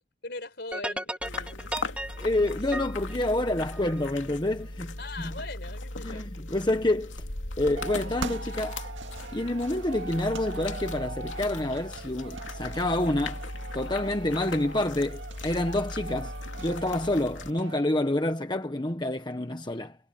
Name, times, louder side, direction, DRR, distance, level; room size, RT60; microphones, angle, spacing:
voice 1, 0.0-1.8 5.0-6.3, left 2 dB, 60° left, 4.4 m, -41 dB
sound 1, 0.7-4.1, right 1 dB, 5° right, 2.6 m, -36 dB
sound 2, 1.2-17.5, left 2 dB, 80° left, 2.7 m, -38 dB
voice 2, 2.2-4.9 5.2-5.3 6.0-7.1 7.6-8.8 9.3-13.4 13.7-20.0, left 1 dB, 25° left, 1.1 m, -28 dB
sound 3, 7.8-17.8, right 3 dB, 75° right, 2.1 m, -41 dB
head